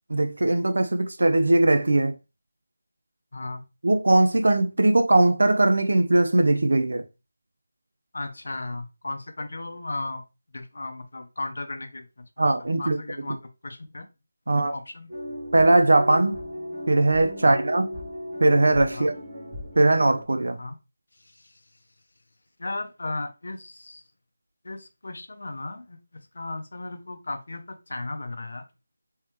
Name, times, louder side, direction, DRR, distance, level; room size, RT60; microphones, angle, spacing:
voice 1, 0.1-2.2 3.8-7.0 12.4-13.0 14.5-14.7 15.5-16.4 16.9-17.8 18.4-19.1 19.8-20.6, right 2 dB, 75° right, 0.6 m, -20 dB
voice 2, 3.3-3.6 8.1-10.2 10.5-12.5 12.8-14.1 14.5-15.1 17.4-17.6 18.9-19.1 20.6-20.8 21.2-21.6 22.6-24.0 24.6-26.0 26.3-28.7, left 2 dB, 70° left, 0.8 m, -35 dB
sound 1, 15.1-20.2, equal, 15° right, 1.2 m, -36 dB
3.3 x 3.2 x 3.1 m
figure-of-eight pair, 175°, 0 cm